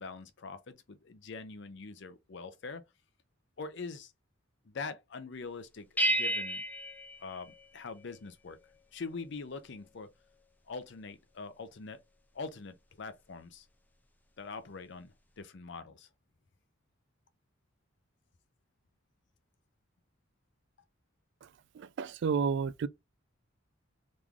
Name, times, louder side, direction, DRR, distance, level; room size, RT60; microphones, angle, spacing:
voice 1, 0.0-2.8 3.6-4.1 4.6-6.6 7.2-8.6 8.9-10.1 10.7-12.0 12.3-13.7 14.4-16.1, left 4 dB, 60° left, 0.6 m, -43 dB
sound 1, 6.0-8.2, right 2 dB, 10° left, 0.4 m, -32 dB
voice 2, 21.8-22.9, right 6 dB, 60° right, 0.3 m, -31 dB
3.6 x 3.1 x 2.4 m
head